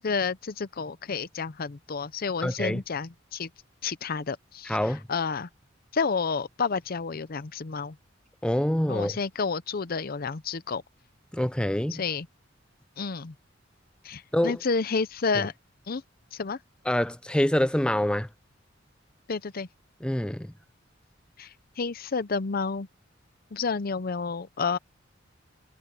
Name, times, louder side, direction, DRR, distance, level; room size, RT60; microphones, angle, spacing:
voice 1, 0.0-3.5 3.8-4.8 5.1-5.5 5.9-8.0 8.9-10.8 11.9-12.3 13.0-13.3 14.0-15.5 15.9-16.0 16.3-16.6 19.3-19.7 21.4-21.5 21.8-22.9 23.5-24.8, left 5 dB, 50° left, 0.6 m, -30 dB
voice 2, 2.4-2.8 4.6-5.0 8.4-9.2 11.3-12.0 14.3-14.6 15.3-15.4 16.9-18.3 20.0-20.5, left 1 dB, 5° left, 0.5 m, -26 dB
head